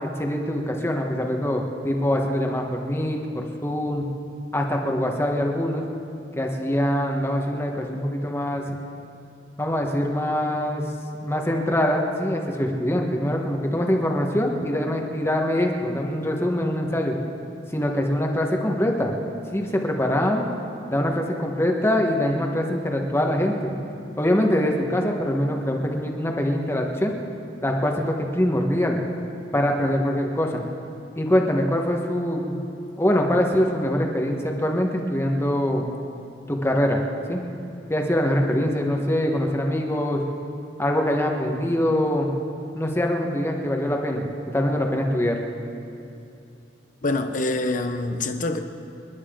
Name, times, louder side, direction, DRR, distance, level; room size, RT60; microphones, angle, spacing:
voice 1, 0.0-4.0 4.5-5.9 6.3-8.6 9.6-10.9 11.2-17.2 17.7-19.1 19.5-20.4 20.9-23.7 24.2-27.1 27.6-29.0 29.5-30.6 31.2-32.5 33.0-35.9 36.5-37.0 37.3-37.4 37.9-40.2 40.8-42.3 42.7-44.3 44.5-45.4, left 1 dB, 15° left, 2 dB, 1.4 m, -23 dB
voice 2, 47.0-48.6, left 2 dB, 45° left, 6 dB, 1.0 m, -25 dB
28.5 x 11.0 x 3.8 m, 2.7 s
head